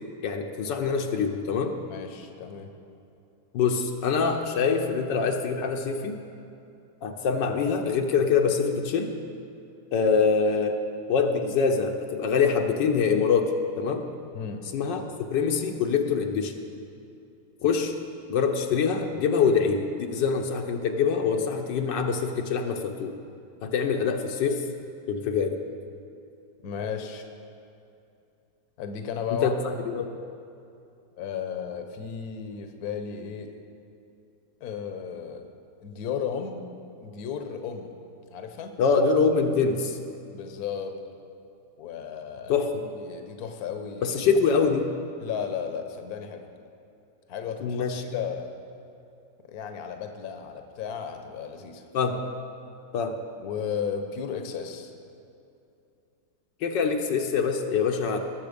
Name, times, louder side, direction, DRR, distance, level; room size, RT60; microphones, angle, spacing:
voice 1, 0.2-1.8 3.5-6.2 7.0-9.1 9.9-10.8 11.1-14.1 14.7-16.6 17.6-17.9 18.3-23.1 23.6-24.7 25.1-25.6 29.3-30.1 38.8-40.0 42.5-42.8 44.0-44.9 47.6-48.1 51.9-52.2 52.9-53.2 56.6-58.2, left 5 dB, 80° left, 4 dB, 1.5 m, -24 dB
voice 2, 1.9-2.7 14.3-14.7 26.6-27.3 28.8-29.5 31.2-33.5 34.6-35.4 35.8-36.6 37.0-37.9 38.3-38.7 40.3-41.0 41.8-42.5 43.0-44.2 45.2-46.5 47.3-47.9 48.1-48.5 49.5-51.8 53.4-54.9, left 7 dB, 60° left, 6 dB, 1.3 m, -34 dB
19.0 x 7.4 x 5.1 m, 2.7 s
omnidirectional pair, 1.9 m